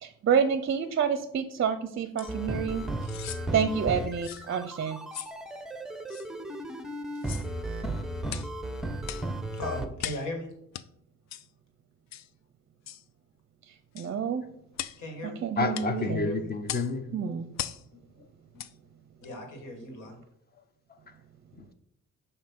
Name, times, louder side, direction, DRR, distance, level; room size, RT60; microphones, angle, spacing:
voice 1, 0.0-2.9 3.2-5.0 13.7-14.4 15.4-16.3 17.1-17.4, right 7 dB, 40° right, 10 dB, 0.5 m, -28 dB
sound 1, 2.2-2.3 3.0-3.4 4.2-4.5 5.1-5.4 6.1-6.3 7.1-7.5 8.3-8.5 9.0-9.3 10.0-10.3 10.7-10.9 11.3-11.5 12.1-12.3 12.9-13.0 14.0-14.1 14.7-15.0 15.7-15.9 16.7-16.9 17.6-17.8 18.6-18.7 19.2-19.3, left 12 dB, 65° left, 0.4 m, -38 dB
sound 2, 2.2-9.9, right 1 dB, ahead, 0.6 m, -35 dB
voice 2, 9.5-10.5 15.0-15.4 16.0-16.5 19.2-20.2, left 1 dB, 90° left, 2 dB, 1.8 m, -37 dB
voice 3, 15.6-17.1 18.2-18.3 18.5-18.6 21.5-21.7, left 3 dB, 30° left, 9 dB, 0.8 m, -30 dB
7.1 x 2.8 x 5.9 m, 0.77 s
cardioid pair, 90°, 30 cm